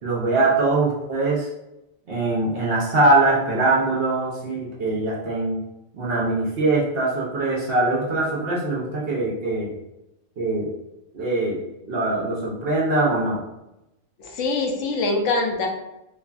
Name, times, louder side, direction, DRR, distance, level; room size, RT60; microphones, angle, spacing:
voice 1, 0.0-1.5 2.1-5.6 5.9-9.7 10.4-10.7 11.1-11.6 11.9-13.4, right 2 dB, 60° right, -4 dB, 0.8 m, -22 dB
voice 2, 14.2-15.7, left 3 dB, 75° left, 2 dB, 0.9 m, -24 dB
3.1 x 2.5 x 2.3 m, 0.90 s
omnidirectional pair, 1.3 m